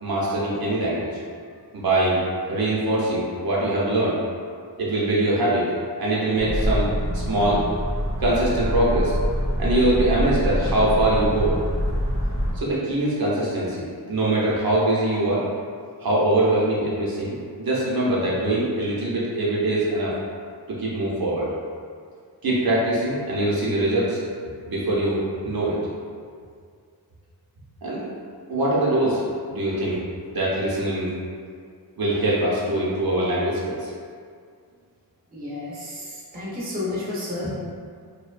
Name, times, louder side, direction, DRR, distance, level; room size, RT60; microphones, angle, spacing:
voice 1, 0.0-1.1 1.7-4.2 4.8-5.7 6.0-6.9 7.1-7.7 8.2-9.1 9.6-11.6 12.5-15.4 16.0-20.1 20.7-21.5 22.4-24.2 24.7-25.8 27.8-28.0 28.5-30.0 30.3-31.1 32.0-33.9, right 1 dB, 65° right, -6 dB, 0.6 m, -23 dB
sound 1, 6.4-12.5, equal, 35° left, 0.7 m, -25 dB
voice 2, 35.3-36.1 36.3-37.5, left 2 dB, 25° right, -8 dB, 0.6 m, -31 dB
2.6 x 2.1 x 2.4 m, 2.1 s
wide cardioid pair, 135°, 39 cm